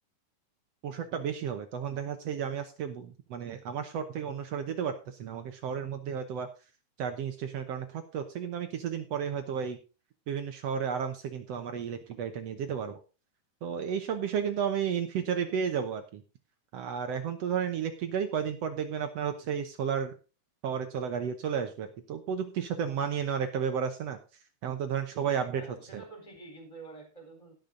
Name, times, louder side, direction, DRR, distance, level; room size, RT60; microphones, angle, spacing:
voice 1, 0.8-6.5 7.0-9.8 10.3-13.0 13.6-16.2 16.7-20.1 20.6-24.2 24.6-25.7 25.9-26.0, right 7 dB, 70° right, 7 dB, 1.6 m, -32 dB
voice 2, 25.5-27.5, right 3 dB, 10° left, 3 dB, 3.9 m, -48 dB
17.0 x 6.2 x 3.8 m, 0.32 s
omnidirectional pair, 4.0 m